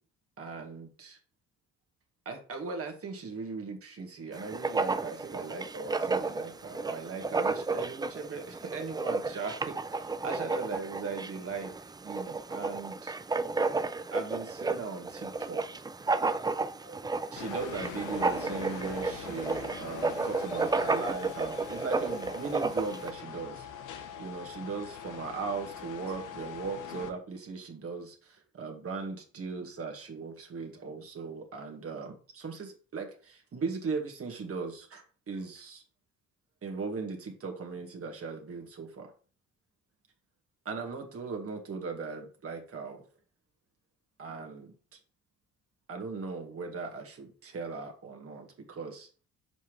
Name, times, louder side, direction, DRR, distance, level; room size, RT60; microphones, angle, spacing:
voice 1, 0.4-1.2 2.3-9.6 10.0-13.1 14.1-15.9 16.8-17.0 17.3-23.7 24.2-35.8 36.6-39.1 40.7-43.0 44.2-45.0 45.9-49.1, right 4 dB, 50° right, 4 dB, 1.9 m, -38 dB
Writing, 4.3-23.1, right 3 dB, 15° right, 0.4 m, -32 dB
sound 1, 17.4-27.1, left 8 dB, 90° left, 1.0 m, -43 dB
7.2 x 5.5 x 3.3 m, 0.39 s
cardioid pair, 90°, 30 cm